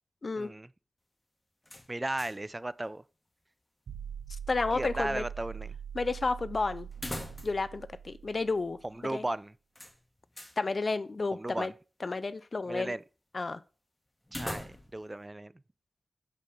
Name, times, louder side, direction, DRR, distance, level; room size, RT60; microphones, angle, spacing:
voice 1, 0.4-0.7 1.9-3.0 4.7-5.8 8.8-9.5 11.3-11.7 12.7-13.0 14.3-15.5, right 2 dB, 25° right, 0.3 m, -35 dB
sound 1, 1.6-2.5 2.8-2.9 6.9-7.8 8.1-8.2 9.8-10.6 14.2-15.1, left 1 dB, 15° left, 1.4 m, -41 dB
sound 2, 3.9-8.9, right 8 dB, 90° right, 0.5 m, -43 dB
voice 2, 4.5-5.3 5.9-6.9 7.4-8.8 9.1-9.2 10.6-11.7 12.0-13.0 13.3-13.6, left 3 dB, 50° left, 0.4 m, -31 dB
5.4 x 5.3 x 3.8 m
cardioid pair, 45°, 0 cm